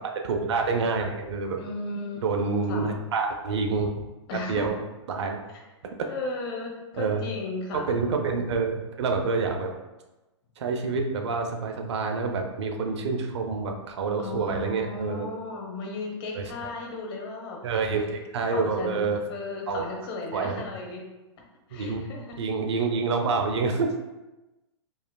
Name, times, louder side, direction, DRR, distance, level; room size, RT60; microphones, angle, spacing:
voice 1, 0.2-1.6 2.2-4.0 4.3-4.8 5.1-5.4 7.0-7.2 7.9-9.7 10.6-15.3 16.3-16.7 17.6-19.2 19.7-19.8 20.3-20.7 21.7-22.1 22.4-24.2, right 4 dB, 65° right, 4 dB, 0.6 m, -27 dB
voice 2, 1.6-2.9 4.3-4.6 6.1-8.1 14.2-17.6 17.9-18.2 18.5-21.0 21.7-22.3, left 3 dB, 50° left, 0 dB, 1.1 m, -35 dB
4.9 x 2.9 x 2.3 m, 1.1 s
hypercardioid pair, 125°, 15 cm